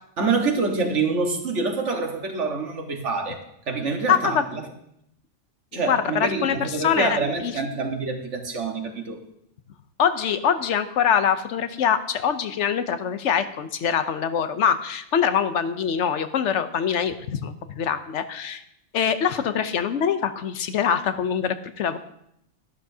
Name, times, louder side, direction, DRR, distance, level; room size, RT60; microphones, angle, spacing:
voice 1, 0.2-3.4 3.7-4.6 5.7-9.2, right 4 dB, 85° right, 3 dB, 1.8 m, -26 dB
voice 2, 4.1-4.4 5.7-7.5 10.0-18.6 18.9-22.0, left 8 dB, 80° left, 10 dB, 1.1 m, -24 dB
12.5 x 12.0 x 2.8 m, 0.75 s
omnidirectional pair, 1.2 m